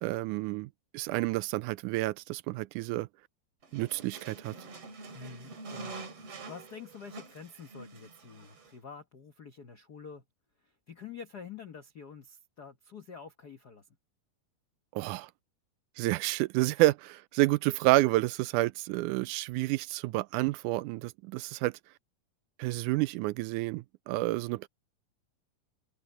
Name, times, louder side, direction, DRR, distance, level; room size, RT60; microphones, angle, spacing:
voice 1, 0.0-3.1 3.7-4.6 15.0-15.3 16.0-21.8 22.6-24.7, right 19 dB, 80° right, 2.0 m, -29 dB
sound 1, 3.6-8.8, right 3 dB, 45° right, 3.6 m, -46 dB
voice 2, 5.1-10.2 10.6-13.9, left 6 dB, 70° left, 0.9 m, -47 dB
omnidirectional pair, 3.8 m